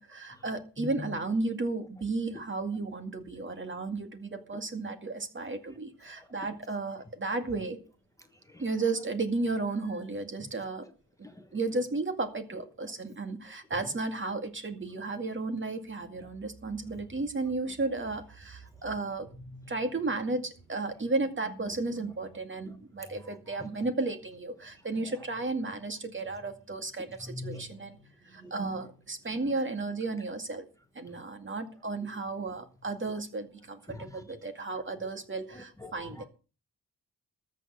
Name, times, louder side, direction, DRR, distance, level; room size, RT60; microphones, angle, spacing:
voice 1, 0.0-7.8 8.6-10.9 11.2-30.7 31.0-36.2, right 3 dB, 30° right, 2.2 m, -34 dB
voice 2, 0.8-1.2 6.2-6.5 8.5-8.6 10.4-10.5 11.2-11.5 22.7-22.8 23.0-23.6 27.5-27.6 28.4-28.5 33.9-34.2 35.5-36.2, left 3 dB, 10° left, 1.2 m, -45 dB
13.5 x 6.6 x 7.8 m
cardioid pair, 100°, 39 cm